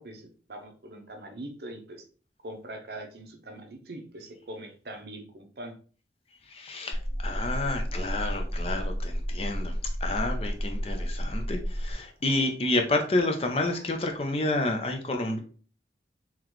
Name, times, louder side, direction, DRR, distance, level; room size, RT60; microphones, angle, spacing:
voice 1, 0.0-2.1 2.4-5.8, right 1 dB, 60° right, 4 dB, 0.7 m, -42 dB
voice 2, 6.5-9.7 10.0-15.4, left 2 dB, 35° left, 4 dB, 0.5 m, -29 dB
sound 1, 6.9-11.9, equal, 75° left, 1.7 m, -31 dB
3.9 x 2.9 x 3.1 m, 0.40 s
head